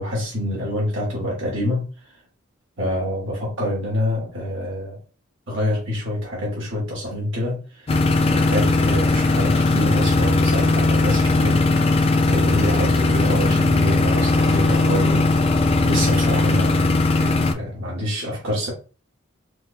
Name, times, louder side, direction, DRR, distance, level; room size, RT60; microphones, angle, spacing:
voice 1, 0.0-2.2 2.8-5.0 5.5-8.0 8.3-11.9 12.3-15.6 15.8-18.7, left 1 dB, 60° right, -5 dB, 1.4 m, -26 dB
sound 1, 7.9-17.5, left 2 dB, 30° left, 0.3 m, -18 dB
4.7 x 2.3 x 2.4 m, 0.36 s
head